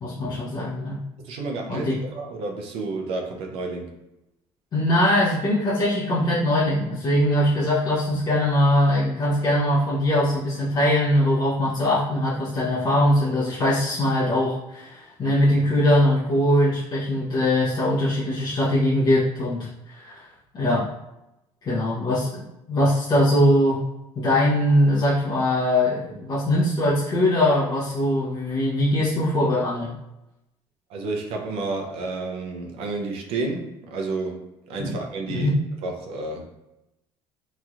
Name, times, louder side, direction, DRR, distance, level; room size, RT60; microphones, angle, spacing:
voice 1, 0.0-1.0 1.7-2.0 4.7-20.2 20.5-20.9 21.6-22.4 22.7-23.8 24.1-29.9 34.8-34.9 35.3-35.6, left 1 dB, 40° left, -9 dB, 0.8 m, -21 dB
voice 2, 1.2-3.9 30.9-35.6 35.8-36.5, right 3 dB, 70° right, 2 dB, 0.6 m, -31 dB
3.0 x 2.7 x 2.4 m, 0.91 s
cardioid pair, 110°, 10 cm